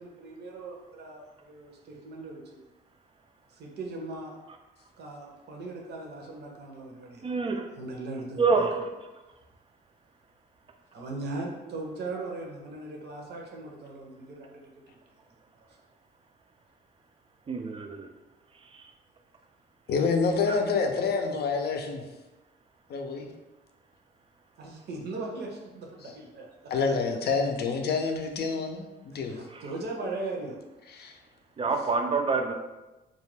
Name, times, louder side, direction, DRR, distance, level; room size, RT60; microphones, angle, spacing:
voice 1, 0.0-2.6 3.5-4.4 5.0-7.4 7.8-8.7 10.9-14.5 14.9-15.0 15.6-15.7 24.6-26.7 29.1-30.6, right 2 dB, 55° right, 0 dB, 0.7 m, -39 dB
voice 2, 7.2-7.7 8.4-8.9 17.5-18.1 18.7-18.9 20.5-20.6 29.5-29.6 31.6-32.5, right 4 dB, 25° right, 4 dB, 0.3 m, -27 dB
voice 3, 19.9-22.0 22.9-23.3 26.7-29.4 31.0-31.1, left 4 dB, 55° left, 4 dB, 0.5 m, -27 dB
2.3 x 2.2 x 3.2 m, 1.1 s
cardioid pair, 90°, 20 cm